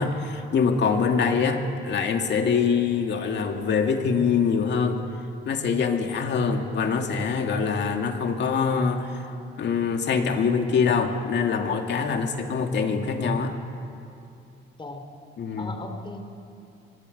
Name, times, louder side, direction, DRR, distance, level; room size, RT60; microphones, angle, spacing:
voice 1, 0.0-5.0 5.5-9.2 9.6-13.5 15.4-15.7, left 5 dB, 60° left, 4 dB, 2.3 m, -24 dB
voice 2, 15.6-16.2, left 3 dB, 25° left, 5 dB, 3.0 m, -38 dB
23.5 x 19.5 x 6.8 m, 2.6 s
cardioid pair, 90°, 20 cm